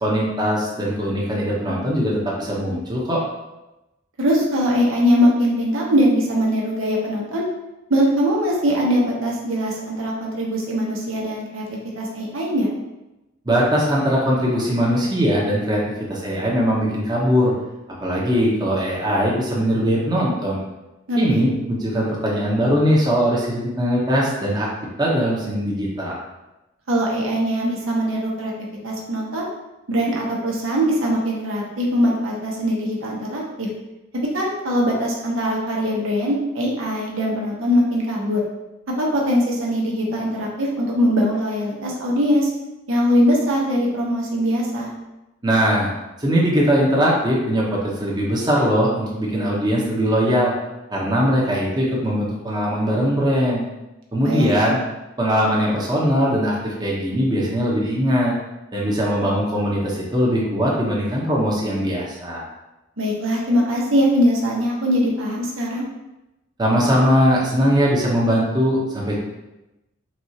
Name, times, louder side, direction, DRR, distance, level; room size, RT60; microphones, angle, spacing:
voice 1, 0.0-3.2 13.4-15.8 16.1-17.5 18.0-20.6 21.2-24.7 25.0-26.2 45.4-45.9 46.2-50.5 50.9-53.6 54.1-54.8 55.2-58.3 58.7-62.5 66.6-69.2, equal, 20° right, -4 dB, 0.8 m, -20 dB
voice 2, 4.2-7.4 7.9-12.7 21.1-21.4 26.9-28.5 28.8-29.5 29.9-33.7 34.1-38.4 38.9-42.5 42.9-44.9 54.2-54.5 63.0-65.8, equal, 90° right, -2 dB, 1.0 m, -21 dB
5.9 x 2.4 x 2.8 m, 0.99 s
head